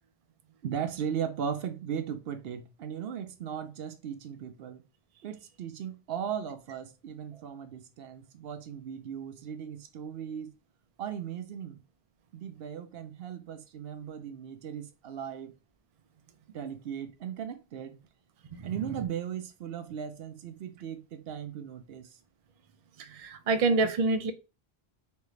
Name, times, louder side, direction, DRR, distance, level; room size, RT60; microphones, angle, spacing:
voice 1, 0.6-4.8 5.2-10.6 11.0-11.8 12.3-15.6 16.5-18.0 18.6-22.2, right 8 dB, 70° right, 0.8 m, -37 dB
voice 2, 23.0-24.3, right 3 dB, 50° right, 0.5 m, -27 dB
3.7 x 3.3 x 3.1 m
omnidirectional pair, 1.1 m